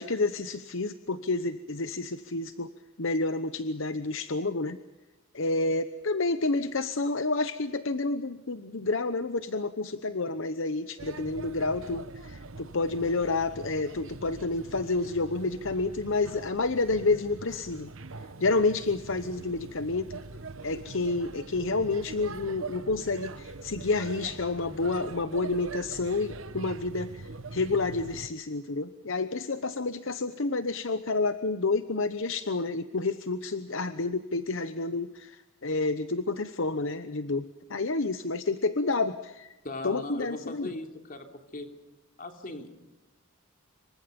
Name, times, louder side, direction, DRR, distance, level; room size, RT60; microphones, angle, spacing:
voice 1, 0.0-2.7 3.0-4.8 5.3-17.9 18.4-20.2 20.6-39.5 39.8-40.7, left 3 dB, 65° left, 11 dB, 1.0 m, -29 dB
Male speech man speaking / Child speech kid speaking / Chatter, 11.0-28.3, right 3 dB, 70° right, 1.2 m, -43 dB
voice 2, 39.6-41.3 41.5-41.7 42.2-42.7, left 2 dB, 40° left, 5 dB, 3.2 m, -38 dB
27.5 x 24.0 x 5.3 m, 1.0 s
head